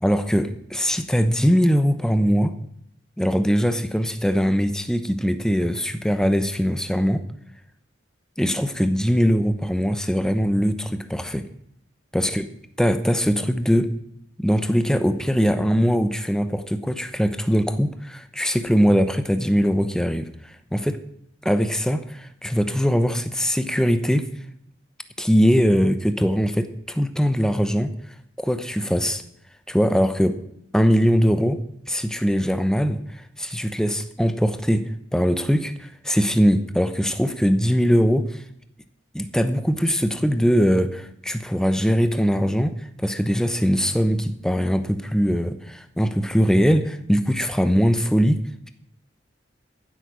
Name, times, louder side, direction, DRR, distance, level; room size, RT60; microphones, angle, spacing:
voice 1, 0.0-2.6 3.2-7.3 8.4-11.5 12.1-12.5 12.8-13.9 14.4-21.0 21.4-24.3 25.2-27.9 28.4-29.2 29.7-30.4 30.7-31.6 31.9-38.4 39.1-48.4, equal, 5° left, 10 dB, 0.8 m, -21 dB
14.5 x 8.3 x 6.1 m, 0.73 s
head